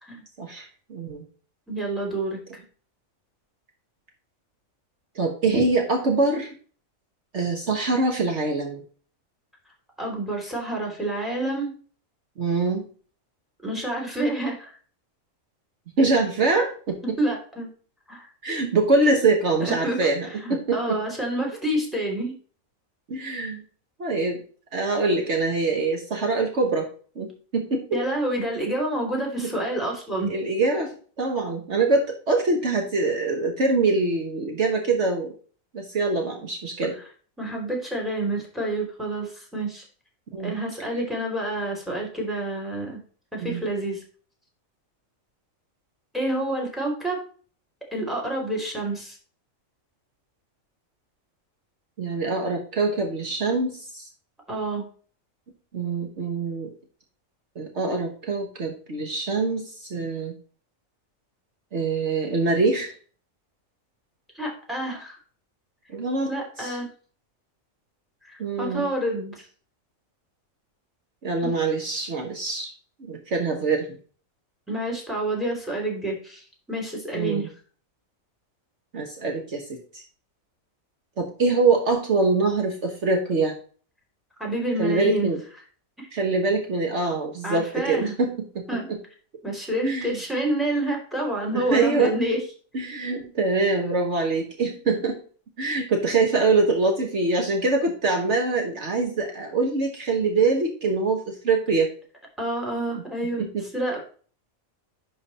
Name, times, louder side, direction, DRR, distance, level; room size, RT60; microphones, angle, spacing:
voice 1, 0.4-1.2 5.1-6.5 7.3-8.8 12.4-12.9 16.0-17.0 18.4-21.0 23.1-23.6 24.0-24.4 24.7-26.9 27.1-28.0 29.1-29.5 30.3-35.3 35.7-37.0 40.3-40.5 43.4-43.6 52.0-54.1 55.7-56.7 57.5-60.3 61.7-62.9 65.9-66.3 66.6-66.8 68.4-68.9 71.2-72.7 73.0-73.9 77.1-77.5 78.9-80.0 81.2-83.5 84.8-85.4 86.1-89.0 89.8-90.2 91.5-92.1 92.7-95.2 95.6-101.9 103.4-103.6, right 3 dB, 60° right, 2 dB, 1.5 m, -24 dB
voice 2, 1.7-2.6 10.0-11.7 13.6-14.7 17.0-17.7 18.1-18.3 19.6-22.3 27.9-30.3 37.4-39.8 40.4-43.0 43.3-44.0 46.1-47.2 47.9-49.2 54.5-54.9 64.3-65.2 66.3-66.9 68.2-69.5 71.4-71.5 74.7-77.5 84.4-85.3 86.0-86.1 87.4-88.1 88.7-88.9 89.4-92.4 102.4-103.5 103.7-104.0, right 1 dB, ahead, 0 dB, 2.9 m, -28 dB
10.5 x 3.9 x 4.1 m, 0.42 s
omnidirectional pair, 1.4 m